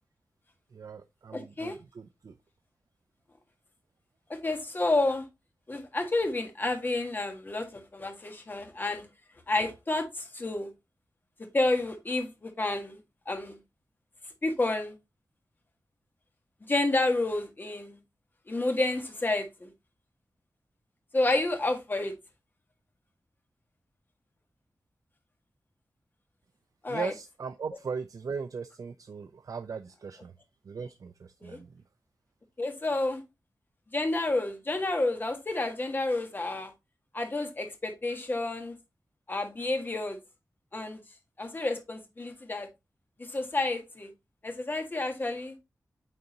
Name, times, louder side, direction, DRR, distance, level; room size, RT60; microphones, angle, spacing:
voice 1, 0.7-2.3 26.9-30.3 30.7-31.8, right 5 dB, 60° right, 0.5 m, -38 dB
voice 2, 1.3-1.7 4.4-5.2 5.7-9.0 9.5-10.7 11.5-13.0 13.3-13.6 14.4-14.9 16.7-18.0 18.5-19.7 21.1-22.1 26.8-27.1 31.4-31.6 32.6-33.2 33.9-36.7 37.1-38.7 39.3-40.2 40.7-41.0 41.4-42.7 43.3-44.1 44.4-45.5, left 2 dB, 30° left, 1.5 m, -30 dB
9.0 x 3.8 x 2.8 m
wide cardioid pair, 130°, 7 cm